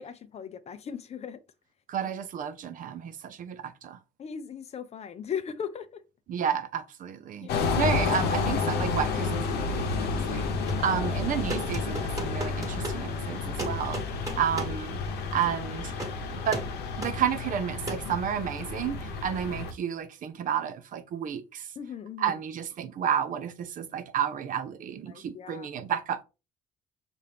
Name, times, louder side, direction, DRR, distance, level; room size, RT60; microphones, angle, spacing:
voice 1, 0.0-1.4 4.2-6.0 7.4-8.0 10.6-10.8 14.2-14.6 15.0-15.3 21.8-22.4 25.1-25.7, left 7 dB, 40° left, 0.5 m, -39 dB
voice 2, 1.9-4.0 6.3-7.5 7.8-10.5 10.8-14.0 14.4-15.0 15.3-15.9 16.3-16.6 17.0-21.7 22.2-26.2, right 8 dB, 55° right, 0.6 m, -31 dB
sound 1, 7.5-19.7, left 4 dB, 75° left, 0.9 m, -30 dB
sound 2, 10.4-10.9 11.5-13.0 13.6-14.8 15.9-16.2 16.5-16.8 17.0-17.2 17.9-18.1, right 1 dB, 20° right, 1.4 m, -35 dB
5.5 x 2.5 x 3.4 m
cardioid pair, 110°, 17 cm